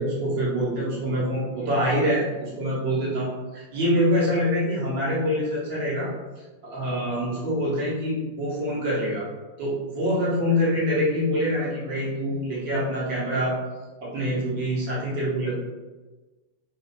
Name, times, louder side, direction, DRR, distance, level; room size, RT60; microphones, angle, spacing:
voice 1, 0.0-6.1 6.6-9.3 9.6-13.6 14.0-15.5, equal, 50° right, -7 dB, 1.2 m, -25 dB
3.1 x 2.7 x 2.2 m, 1.2 s
figure-of-eight pair, 90°, 0 cm